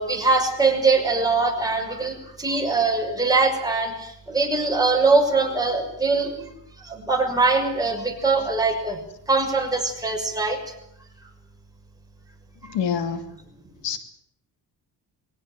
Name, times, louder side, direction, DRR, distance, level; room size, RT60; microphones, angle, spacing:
voice 1, 0.0-6.5 6.8-9.0 9.3-10.7, right 3 dB, 10° right, 1 dB, 6.3 m, -22 dB
voice 2, 12.7-13.3 13.8-14.0, left 7 dB, 85° left, 7 dB, 2.9 m, -26 dB
23.0 x 18.0 x 9.1 m, 0.75 s
cardioid pair, 105°, 41 cm